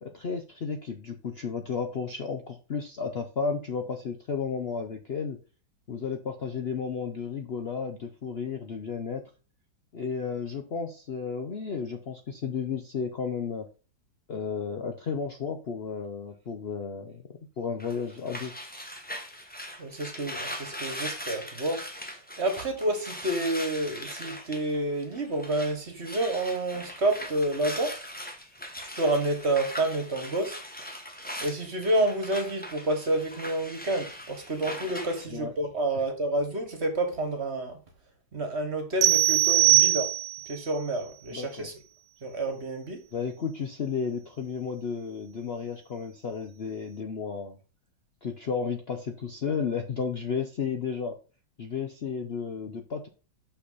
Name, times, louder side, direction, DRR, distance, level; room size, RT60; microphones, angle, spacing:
voice 1, 0.0-5.4 5.9-9.2 9.9-13.7 14.3-17.2 17.6-18.5 35.3-35.5 35.9-36.0 41.3-41.7 43.1-47.6 48.2-51.2 51.6-53.1, left 6 dB, 85° left, 0.5 m, -33 dB
sound 1, 17.8-25.8 26.0-35.2, equal, 5° left, 0.7 m, -40 dB
voice 2, 19.8-21.8 22.4-28.0 29.0-30.6 31.4-37.7 38.3-40.1 40.5-41.7 42.2-43.0, right 1 dB, 35° right, 1.5 m, -29 dB
sound 2, 39.0-40.6, right 16 dB, 90° right, 1.5 m, -21 dB
6.2 x 5.8 x 4.0 m
omnidirectional pair, 2.1 m